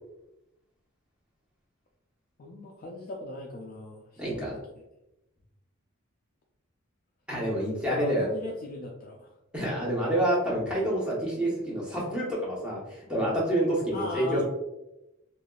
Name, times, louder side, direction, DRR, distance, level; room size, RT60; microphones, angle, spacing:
voice 1, 2.4-4.6 7.9-9.3 13.9-14.4, left 1 dB, 40° left, -1 dB, 0.3 m, -38 dB
voice 2, 4.2-4.5 7.3-8.2 9.5-14.4, right 1 dB, 5° right, -6 dB, 0.9 m, -28 dB
3.3 x 2.4 x 2.3 m, 0.92 s
head